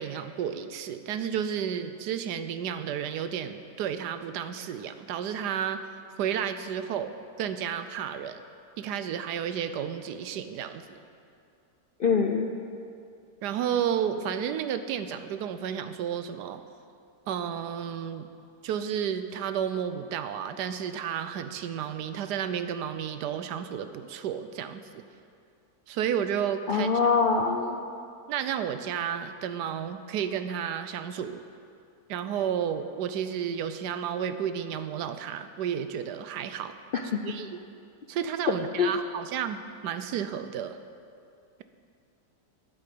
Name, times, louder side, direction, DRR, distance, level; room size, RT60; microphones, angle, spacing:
voice 1, 0.0-5.8 6.2-8.4 8.8-11.0 13.4-16.6 17.3-18.3 18.6-25.0 25.9-26.9 28.3-31.4 32.1-36.7 37.2-37.6 38.1-40.8, right 8 dB, 85° right, 10 dB, 1.3 m, -32 dB
voice 2, 12.0-12.5 26.7-27.8 36.9-37.0 38.8-38.9, left 5 dB, 60° left, 2 dB, 0.5 m, -23 dB
9.6 x 8.7 x 7.7 m, 2.4 s
omnidirectional pair, 1.7 m